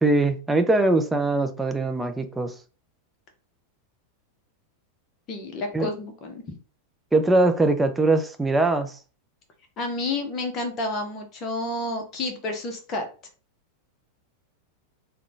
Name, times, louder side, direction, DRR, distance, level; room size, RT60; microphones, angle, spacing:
voice 1, 0.0-2.5 5.7-5.9 7.1-8.9, right 2 dB, 10° right, 0.5 m, -21 dB
voice 2, 5.3-6.4 9.8-13.0, left 2 dB, 30° left, 0.9 m, -30 dB
3.6 x 2.3 x 3.5 m
figure-of-eight pair, 90°, 0 cm